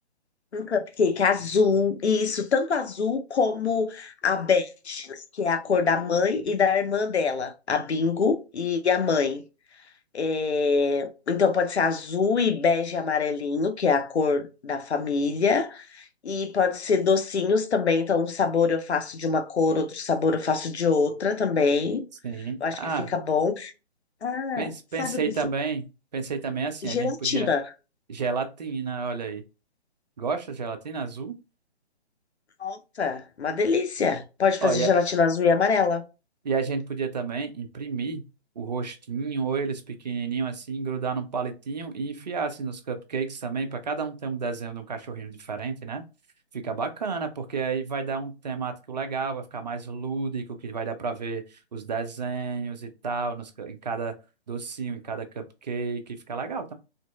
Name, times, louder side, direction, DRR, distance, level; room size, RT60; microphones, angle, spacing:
voice 1, 0.5-9.4 10.1-22.0 22.6-23.7 24.2-24.7 25.0-25.2 26.8-27.6 32.6-36.0, left 5 dB, 80° left, 0.5 m, -24 dB
voice 2, 22.2-23.1 24.6-27.5 28.1-29.4 30.2-31.3 34.6-34.9 36.4-38.2 38.6-46.0 46.5-54.1 54.5-56.7, right 5 dB, 40° right, 0.4 m, -31 dB
2.8 x 2.5 x 2.2 m
figure-of-eight pair, 135°, 33 cm